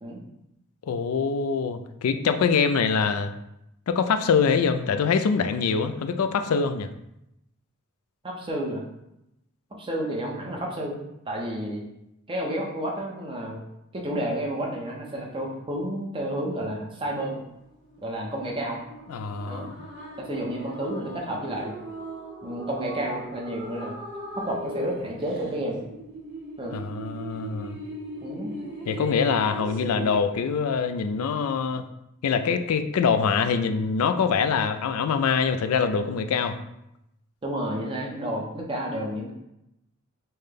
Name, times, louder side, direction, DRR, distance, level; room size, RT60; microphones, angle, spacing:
voice 1, 0.8-3.3 3.9-6.9 19.1-19.7 26.7-27.8 28.9-31.8 32.2-36.6, left 5 dB, 90° left, 8 dB, 0.4 m, -24 dB
voice 2, 8.2-8.8 9.8-11.0 11.3-11.8 12.3-13.6 13.9-17.4 18.0-18.8 19.5-19.7 20.2-21.7 22.4-23.9 24.3-25.8 26.6-26.8 28.2-28.5 37.4-39.3, right 1 dB, 25° right, -2 dB, 0.7 m, -31 dB
sound 1, 17.4-30.2, right 1 dB, 60° right, 1.0 m, -39 dB
5.5 x 2.2 x 3.4 m, 0.84 s
head